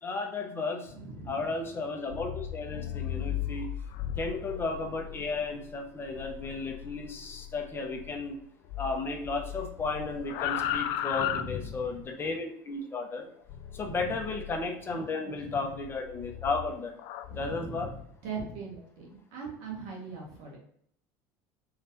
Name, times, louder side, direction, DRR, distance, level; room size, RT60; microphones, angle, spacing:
voice 1, 0.0-0.9 1.3-3.7 4.2-8.4 8.8-13.3 13.7-16.9 17.4-17.9, left 3 dB, 25° left, 2 dB, 0.9 m, -34 dB
voice 2, 0.9-1.5 11.1-11.9 13.8-14.1 14.9-15.6 17.3-17.9 18.2-20.6, right 4 dB, 75° right, -1 dB, 1.7 m, -41 dB
sound 1, 2.0-8.4 8.7-12.1 13.5-14.7 15.4-18.0, left 11 dB, 65° left, 0.3 m, -37 dB
4.9 x 3.3 x 2.8 m, 0.68 s
supercardioid pair, 95°, 9 cm